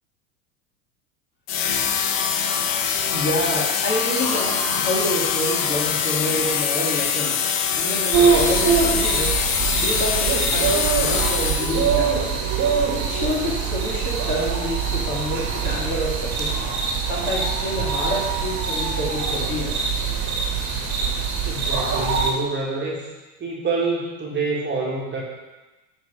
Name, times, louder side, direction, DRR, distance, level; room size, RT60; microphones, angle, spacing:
sound 1, 1.5-12.0, left 7 dB, 60° left, 1.0 m, -24 dB
voice 1, 3.1-7.4 7.8-9.3 9.8-12.5 13.0-16.5 17.1-20.2, left 1 dB, 25° left, -3 dB, 2.1 m, -28 dB
sound 2, 4.2-7.5, left 1 dB, 10° left, 0.5 m, -37 dB
sound 3, 8.1-22.3, right 6 dB, 40° right, 2.1 m, -23 dB
voice 2, 21.4-23.1 23.4-25.2, right 3 dB, 25° right, -3 dB, 2.0 m, -26 dB
9.6 x 4.5 x 5.3 m, 1.1 s
figure-of-eight pair, 75°, 44 cm